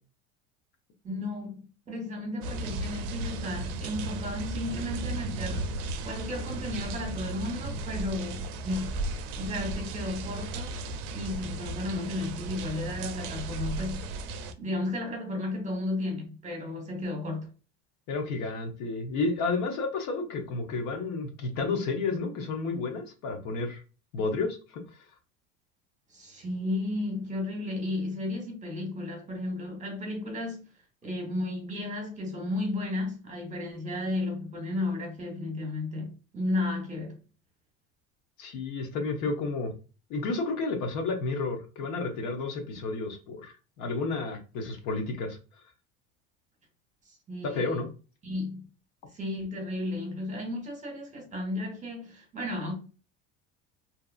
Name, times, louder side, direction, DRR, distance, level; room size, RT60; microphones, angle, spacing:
voice 1, 1.0-5.8 6.0-9.0 9.4-14.1 14.6-17.5 26.1-30.6 31.0-37.2 47.3-47.9 48.2-48.7 49.1-52.7, left 2 dB, 20° right, 1.1 m, -34 dB
sound 1, 2.4-14.5, right 2 dB, 65° right, 0.5 m, -35 dB
voice 2, 18.1-23.8 24.1-24.8 38.4-39.7 40.1-45.4 47.4-47.9, left 3 dB, 60° left, 0.9 m, -31 dB
2.8 x 2.4 x 2.3 m
supercardioid pair, 115°, 32 cm